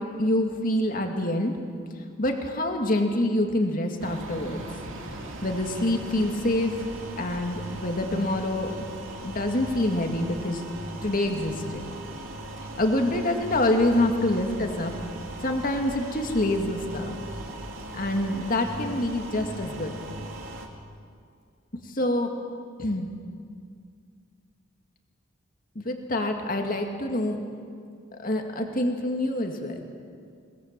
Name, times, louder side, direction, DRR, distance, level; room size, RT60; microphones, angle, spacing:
voice 1, 0.2-1.5 2.2-4.6 5.4-6.8 7.2-8.7 9.2-10.6 11.0-11.8 12.8-14.9 15.4-17.2 17.9-20.0 21.9-22.3 22.8-23.1 25.8-27.4 28.2-29.8, left 1 dB, 45° left, 3 dB, 2.2 m, -26 dB
sound 1, 4.0-20.7, right 1 dB, 70° right, 2.6 m, -39 dB
22.5 x 20.5 x 7.6 m, 2.2 s
head